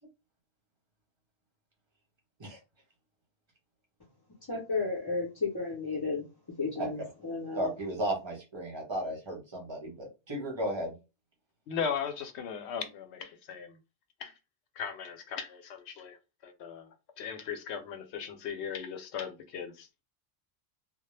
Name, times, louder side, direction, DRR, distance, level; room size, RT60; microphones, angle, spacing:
voice 1, 4.5-6.2 6.6-7.7, left 4 dB, 25° left, 0.5 m, -33 dB
voice 2, 7.5-10.9, right 1 dB, 25° right, 0.9 m, -34 dB
voice 3, 11.7-13.8 14.2-14.4 14.8-16.2 16.4-16.9 17.2-20.0, left 7 dB, 75° left, 0.8 m, -37 dB
2.2 x 2.0 x 3.1 m
omnidirectional pair, 1.1 m